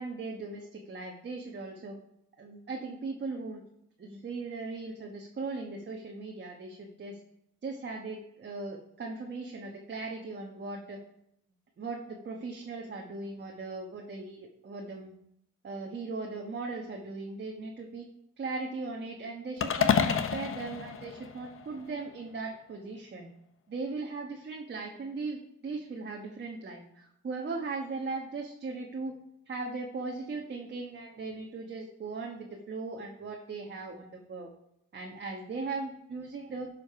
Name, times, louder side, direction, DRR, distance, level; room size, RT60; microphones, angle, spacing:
voice 1, 0.0-2.0 2.4-3.6 4.0-7.2 7.6-11.0 11.8-15.1 15.6-18.0 18.4-23.3 23.7-29.2 29.5-34.5 34.9-36.7, right 3 dB, 35° right, 1 dB, 1.2 m, -38 dB
sound 1, 19.6-21.9, left 7 dB, 45° left, 0.8 m, -29 dB
11.5 x 5.1 x 4.8 m, 0.78 s
cardioid pair, 90°, 30 cm